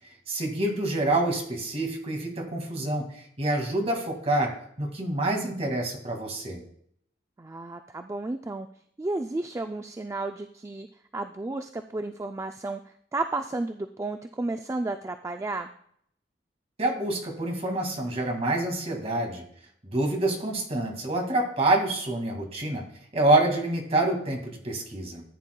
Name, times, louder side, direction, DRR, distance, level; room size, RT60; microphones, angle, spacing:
voice 1, 0.3-4.5 4.8-6.6 16.8-19.4 19.8-22.8 23.1-25.2, right 2 dB, 35° right, 2 dB, 2.0 m, -27 dB
voice 2, 7.4-8.7 9.0-10.9 11.1-12.8 13.1-15.7, right 2 dB, 15° right, 7 dB, 0.3 m, -32 dB
14.5 x 8.9 x 2.3 m, 0.66 s
head